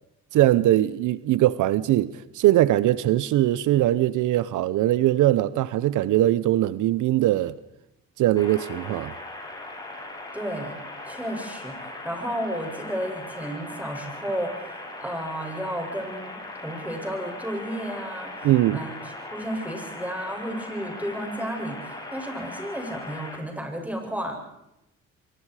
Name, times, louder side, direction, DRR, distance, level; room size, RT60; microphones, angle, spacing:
voice 1, 0.3-7.5 8.2-9.1 18.4-18.8, right 14 dB, 85° right, 0.8 m, -21 dB
sound 1, 8.4-23.4, left 2 dB, 15° left, 7.8 m, -39 dB
voice 2, 10.3-10.7 11.1-18.9 19.3-24.4, equal, 5° right, 7.6 m, -32 dB
26.5 x 24.0 x 4.9 m
cardioid pair, 90°, 30 cm